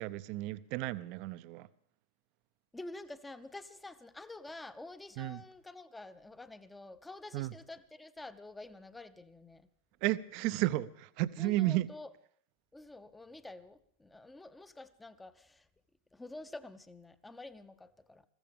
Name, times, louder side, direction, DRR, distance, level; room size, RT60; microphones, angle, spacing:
voice 1, 0.0-1.7 5.2-5.4 7.3-7.5 10.0-11.9, right 16 dB, 45° right, 0.6 m, -33 dB
voice 2, 2.7-9.7 11.4-12.1 12.7-15.7 16.1-18.3, left 2 dB, 10° left, 0.8 m, -48 dB
21.5 x 15.0 x 3.6 m
figure-of-eight pair, 90°, 0 cm